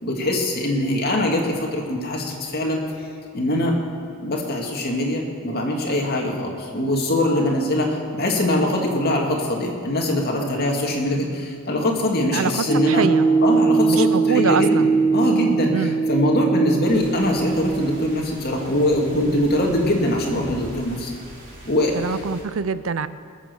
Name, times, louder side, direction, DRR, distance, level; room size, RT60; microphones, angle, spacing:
voice 1, 0.0-2.8 3.3-3.8 4.2-13.0 13.4-14.9 15.1-21.1 21.7-22.2, left 1 dB, 50° left, 0 dB, 2.3 m, -22 dB
voice 2, 12.3-13.3 13.9-14.9 15.7-16.0 21.9-23.1, right 5 dB, 70° right, 14 dB, 0.5 m, -24 dB
sound 1, 12.7-18.2, right 4 dB, 10° left, 1.4 m, -21 dB
sound 2, 16.8-22.4, right 1 dB, 40° right, 4.0 m, -41 dB
20.5 x 7.6 x 7.0 m, 2.4 s
head